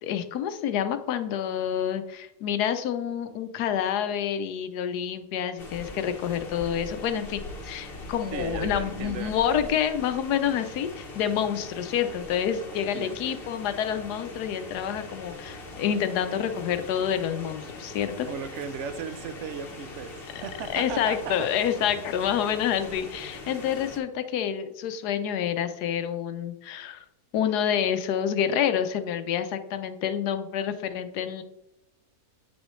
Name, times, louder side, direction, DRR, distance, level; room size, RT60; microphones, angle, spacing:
voice 1, 0.0-18.3 20.3-20.4 20.7-27.0 27.3-31.4, left 9 dB, 85° left, 9 dB, 1.2 m, -28 dB
sound 1, 5.6-24.0, left 2 dB, 40° left, 1.2 m, -41 dB
voice 2, 8.3-9.3 9.7-9.8 12.9-13.5 18.3-21.7, right 7 dB, 65° right, 11 dB, 0.8 m, -37 dB
8.1 x 6.2 x 3.1 m, 0.86 s
omnidirectional pair, 1.7 m